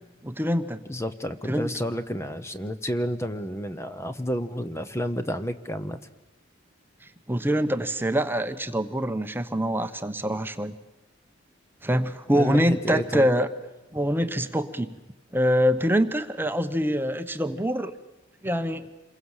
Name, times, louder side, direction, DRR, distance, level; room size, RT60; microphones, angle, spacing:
voice 1, 0.2-0.8 1.5-1.7 7.3-10.7 11.8-13.5 13.9-14.9 15.3-17.9 18.4-18.8, equal, 10° right, 9 dB, 0.9 m, -25 dB
voice 2, 0.9-6.0 12.3-13.3, equal, 15° left, 10 dB, 0.9 m, -30 dB
28.0 x 22.5 x 7.3 m, 1.1 s
head